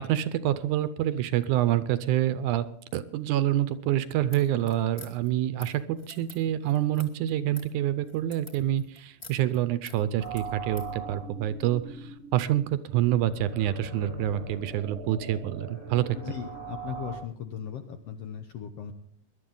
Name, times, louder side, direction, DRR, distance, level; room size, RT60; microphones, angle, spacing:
voice 1, 0.1-2.7 2.9-16.2, right 12 dB, 75° right, 13 dB, 2.0 m, -27 dB
sound 1, 4.3-10.9, left 2 dB, 15° left, 1.8 m, -49 dB
sound 2, 10.2-17.1, right 4 dB, 40° left, 7.0 m, -41 dB
voice 2, 16.1-18.9, left 8 dB, 70° left, 6 dB, 1.6 m, -38 dB
21.0 x 11.5 x 3.9 m, 0.64 s
omnidirectional pair, 3.8 m